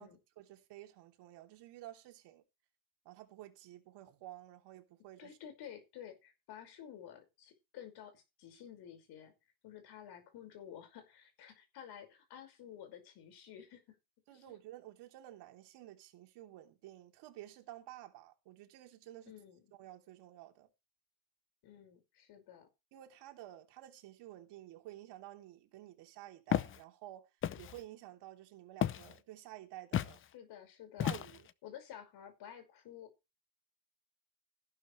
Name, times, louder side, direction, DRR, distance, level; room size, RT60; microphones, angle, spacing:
voice 1, 0.0-2.4 3.0-5.4 14.3-19.4 19.8-20.7 22.9-27.3 27.5-30.2 31.0-31.5, right 14 dB, 60° right, 3.2 m, -52 dB
voice 2, 5.2-9.3 9.6-14.0 14.3-14.6 19.3-19.7 21.6-22.7 30.3-31.1 31.6-33.1, left 9 dB, 55° left, 5.5 m, -52 dB
Walk footsteps, 26.5-26.8 27.4-27.8 28.8-29.1 29.9-30.2 31.0-31.5, left 10 dB, 30° left, 0.6 m, -33 dB
14.5 x 12.0 x 3.3 m
cardioid pair, 145°, 45 cm